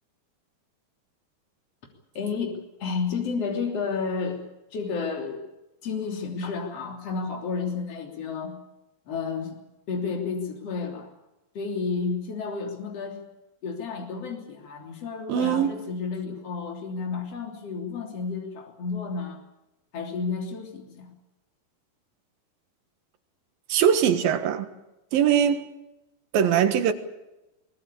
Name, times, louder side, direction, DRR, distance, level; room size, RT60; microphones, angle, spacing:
voice 1, 2.1-4.4 4.7-5.5 5.8-8.6 9.1-9.6 9.9-11.1 11.5-13.2 13.6-19.4 19.9-21.1, left 5 dB, 45° left, 4.1 m, -31 dB
voice 2, 15.3-15.7 23.7-24.7 25.1-25.6 26.3-26.9, right 8 dB, 90° right, 3.3 m, -21 dB
22.5 x 20.0 x 8.5 m
omnidirectional pair, 4.0 m